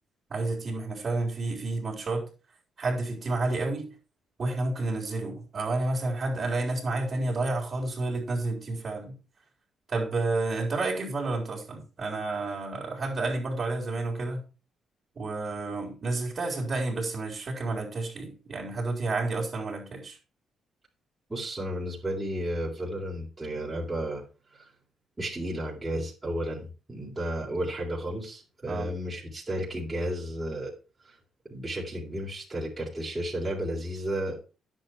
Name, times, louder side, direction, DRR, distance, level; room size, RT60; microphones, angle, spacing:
voice 1, 0.3-2.3 2.8-3.9 4.4-9.2 9.9-14.4 15.2-20.2 28.7-28.9, right 2 dB, 40° right, 4.0 m, -30 dB
voice 2, 21.3-24.2 24.5-24.7 25.2-30.7 31.0-31.2 31.5-34.4, right 1 dB, 20° right, 3.7 m, -33 dB
10.0 x 8.0 x 4.7 m
cardioid pair, 90°, 0 cm